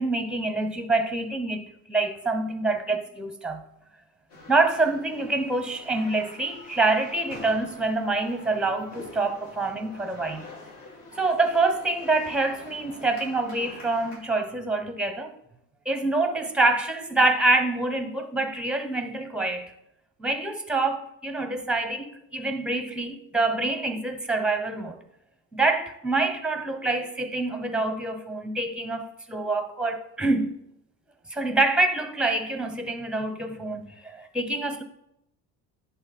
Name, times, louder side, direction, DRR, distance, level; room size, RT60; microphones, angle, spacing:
voice 1, 0.0-3.6 4.5-10.5 11.2-15.3 15.9-19.7 20.2-25.0 25.5-30.5 31.3-34.8, right 2 dB, 5° right, 0.9 m, -26 dB
sound 1, 4.3-14.2, left 3 dB, 70° left, 3.0 m, -46 dB
10.5 x 4.4 x 4.2 m
supercardioid pair, 90°, 38 cm